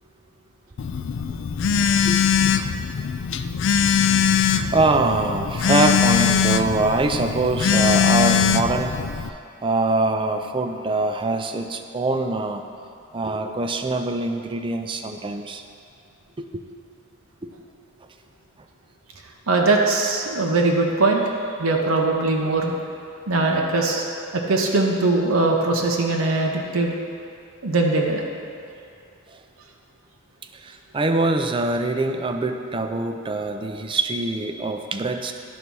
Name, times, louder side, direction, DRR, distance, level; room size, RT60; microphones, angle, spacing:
Telephone, 0.8-9.3, left 7 dB, 60° left, 0.3 m, -21 dB
voice 1, 2.0-2.5 4.4-8.9 9.6-12.6 13.1-15.6 16.4-16.6 17.4-17.5 29.3-29.4 30.5-35.3, right 2 dB, 25° right, 6 dB, 0.4 m, -24 dB
voice 2, 19.5-21.2 21.6-22.7 23.3-24.0 24.3-27.0 27.6-28.2, right 3 dB, 90° right, 1 dB, 0.9 m, -21 dB
11.0 x 4.1 x 6.1 m, 2.5 s
head